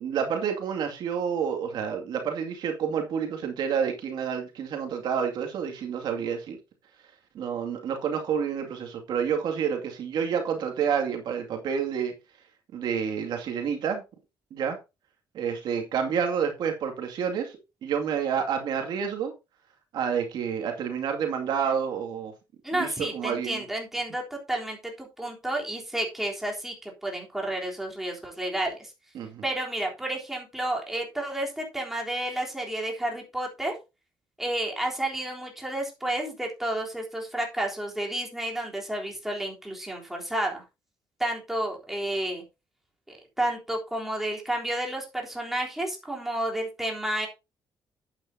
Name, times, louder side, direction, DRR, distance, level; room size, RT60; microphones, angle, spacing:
voice 1, 0.0-6.6 7.3-12.1 12.7-14.0 14.5-14.8 15.3-19.3 19.9-22.3 22.7-23.6 29.1-29.4, right 7 dB, 65° right, 2.3 m, -29 dB
voice 2, 22.6-28.9 29.4-33.7 34.4-40.6 41.2-42.4 43.1-47.3, right 1 dB, 5° right, 3.6 m, -31 dB
10.5 x 9.1 x 2.8 m
cardioid pair, 155°, 8 cm